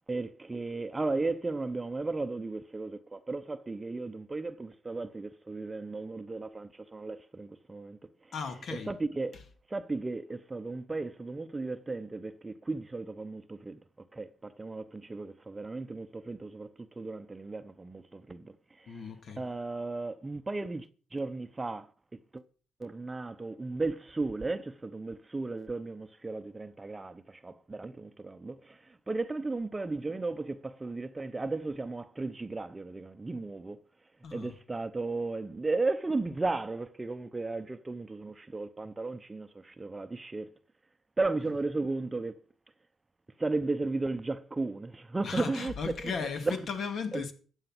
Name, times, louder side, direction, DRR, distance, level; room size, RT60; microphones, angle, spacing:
voice 1, 0.1-8.3 8.7-13.8 14.1-19.1 19.4-21.9 22.3-22.4 22.8-33.8 34.3-40.5 41.2-42.4 43.4-45.7 46.0-46.6 47.1-47.2, right 3 dB, 20° right, 0.8 m, -35 dB
voice 2, 8.3-8.9 9.3-9.4 18.9-19.5 34.2-34.5 41.5-41.6 45.2-47.3, left 5 dB, 55° left, 2.1 m, -36 dB
14.0 x 8.2 x 6.0 m
cardioid pair, 90°, 0 cm